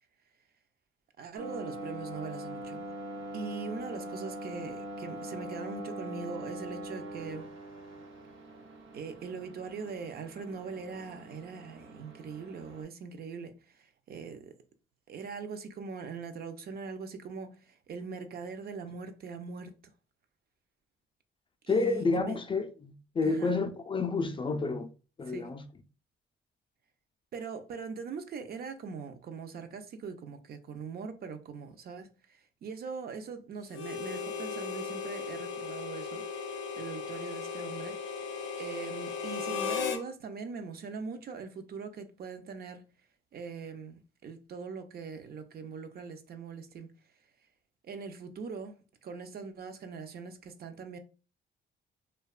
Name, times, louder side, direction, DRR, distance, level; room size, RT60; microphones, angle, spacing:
voice 1, 1.2-2.9 3.3-7.5 8.9-14.5 15.1-19.7 21.7-22.4 23.2-23.5 25.3-25.5 27.3-36.2 36.8-38.3 38.6-42.8 43.3-46.9 47.8-51.0, right 5 dB, 50° right, 0.5 m, -41 dB
sound 1, 1.4-12.8, right 1 dB, 85° right, 0.8 m, -42 dB
voice 2, 21.7-24.9 25.2-25.6, left 3 dB, 25° left, 0.3 m, -30 dB
Harmonica, 33.7-40.0, left 6 dB, 90° left, 0.5 m, -36 dB
2.7 x 2.2 x 2.3 m
cardioid pair, 90°, 20 cm